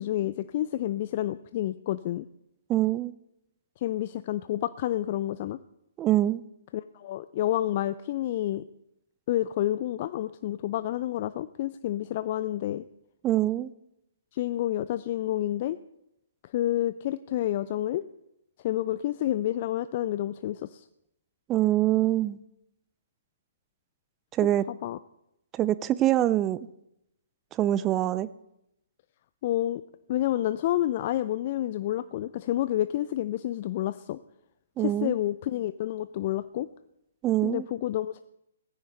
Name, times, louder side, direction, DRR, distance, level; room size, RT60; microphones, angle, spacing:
voice 1, 0.0-2.3 3.8-5.6 6.7-8.6 9.3-12.8 14.3-15.8 16.5-18.0 18.6-20.8 24.8-25.0 29.4-29.8 30.1-34.2 34.8-36.7 37.4-38.2, left 13 dB, 40° left, 14 dB, 0.4 m, -29 dB
voice 2, 2.7-3.1 6.0-6.4 13.2-13.7 21.5-22.4 24.3-24.6 25.5-26.6 27.5-28.3 34.8-35.1 37.2-37.6, right 13 dB, 20° right, 17 dB, 0.4 m, -24 dB
16.5 x 14.5 x 3.3 m, 0.83 s
figure-of-eight pair, 125°, 0 cm